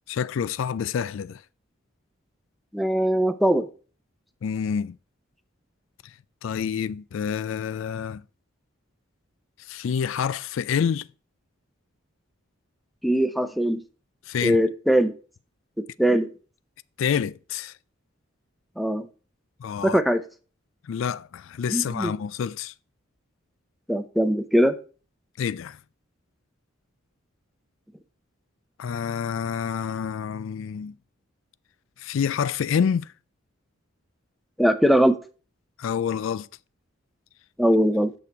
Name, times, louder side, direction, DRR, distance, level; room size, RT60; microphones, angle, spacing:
voice 1, 0.1-1.4 4.4-5.0 6.4-8.2 9.7-11.1 14.3-14.6 17.0-17.7 19.6-20.0 20.9-22.7 25.4-25.8 28.8-30.9 32.0-33.1 35.8-36.5, left 7 dB, 75° left, 0.3 m, -27 dB
voice 2, 2.7-3.7 13.0-13.8 14.4-15.1 16.0-16.3 18.8-19.1 19.8-20.2 21.7-22.1 23.9-24.8 34.6-35.2 37.6-38.1, equal, ahead, 0.7 m, -21 dB
8.3 x 6.7 x 4.6 m
head